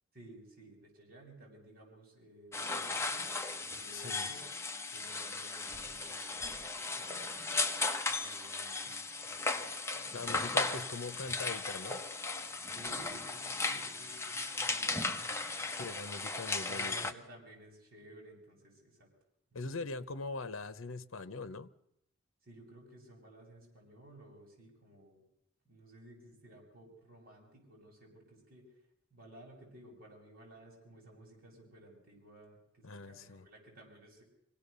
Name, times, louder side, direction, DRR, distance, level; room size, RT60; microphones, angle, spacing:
voice 1, 0.1-3.3 3.7-4.5 4.9-7.3 8.1-11.3 12.6-15.7 16.6-19.1 22.4-25.2 25.6-28.8 29.1-34.2, right 1 dB, 45° right, 7.6 m, -56 dB
sound 1, 2.5-17.1, left 3 dB, 15° left, 1.1 m, -36 dB
voice 2, 3.9-4.3 10.1-12.0 15.7-17.0 19.5-21.7 32.8-33.5, left 3 dB, 75° left, 0.9 m, -42 dB
25.0 x 17.0 x 6.8 m
head